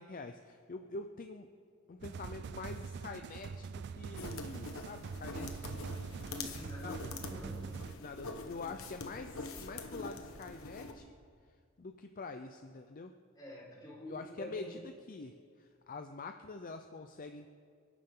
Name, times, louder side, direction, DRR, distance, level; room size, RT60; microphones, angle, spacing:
voice 1, 0.0-1.5 1.9-6.0 6.4-6.6 6.8-7.1 7.9-11.2 11.8-13.1 14.1-17.5, left 3 dB, 45° left, 6 dB, 0.6 m, -46 dB
sound 1, 2.0-7.9, right 5 dB, 55° right, 0.3 m, -44 dB
sound 2, 4.2-10.9, left 3 dB, 85° left, 1.3 m, -45 dB
voice 2, 6.2-7.8 13.3-14.8, left 1 dB, 20° left, -5 dB, 4.7 m, -48 dB
29.5 x 11.0 x 3.8 m, 2.1 s
head